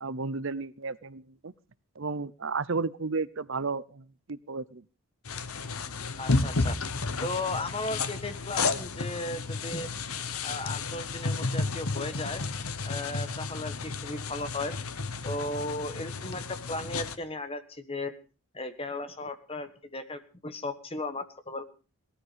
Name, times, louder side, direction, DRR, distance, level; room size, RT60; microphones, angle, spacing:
voice 1, 0.0-1.5 2.0-4.8, right 4 dB, 60° right, 18 dB, 0.7 m, -33 dB
sound 1, 5.2-17.2, left 3 dB, 80° left, 1.3 m, -32 dB
voice 2, 6.2-6.8 7.2-9.9 10.4-12.4 12.8-14.7 15.2-18.1 18.5-21.6, left 2 dB, 25° left, 10 dB, 1.4 m, -36 dB
18.0 x 13.5 x 5.1 m, 0.36 s
head